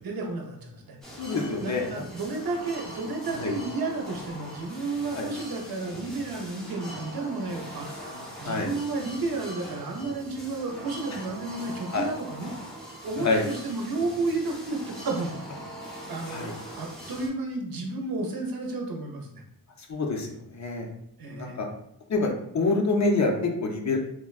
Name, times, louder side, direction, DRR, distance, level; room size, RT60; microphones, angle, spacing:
voice 1, 0.0-1.0 1.6-7.9 8.4-12.5 13.0-15.7 16.1-19.4 21.2-21.6, right 3 dB, 65° right, 1 dB, 0.6 m, -32 dB
sound 1, 1.0-17.3, right 1 dB, ahead, 0.6 m, -42 dB
voice 2, 1.2-2.0 3.3-3.5 5.1-5.3 8.0-8.1 8.4-8.7 11.9-12.0 13.2-13.4 16.3-16.5 19.9-20.9 21.2-21.7 22.1-24.0, left 3 dB, 45° left, 1 dB, 0.5 m, -27 dB
3.4 x 2.1 x 2.3 m, 0.74 s
wide cardioid pair, 140°, 38 cm